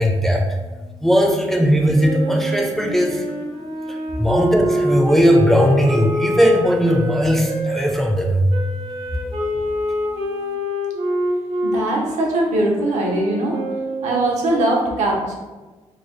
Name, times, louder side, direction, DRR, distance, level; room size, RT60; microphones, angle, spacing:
voice 1, 0.0-10.5, equal, 5° left, 1 dB, 0.4 m, -19 dB
Wind instrument woodwind instrument, 1.9-7.8 8.5-14.4, equal, 60° right, 0.8 m, -26 dB
voice 2, 11.6-13.6 14.0-15.3, right 1 dB, 90° right, -2 dB, 0.8 m, -21 dB
3.2 x 2.1 x 3.7 m, 1.2 s
cardioid pair, 120°, 12 cm